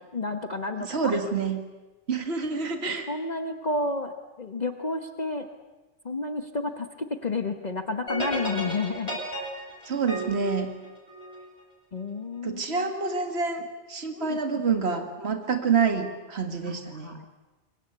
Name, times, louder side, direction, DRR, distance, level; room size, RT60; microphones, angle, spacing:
voice 1, 0.0-1.2 3.1-5.5 6.0-9.2 11.9-12.9 14.1-14.4 16.6-17.3, left 3 dB, 35° left, 6 dB, 1.2 m, -31 dB
voice 2, 0.9-1.6 2.1-3.1 9.9-10.7 12.4-17.2, right 5 dB, 60° right, 5 dB, 2.2 m, -27 dB
sound 1, 8.1-11.5, equal, 55° left, 8.3 m, -34 dB
27.0 x 23.5 x 8.2 m, 1.2 s
omnidirectional pair, 1.2 m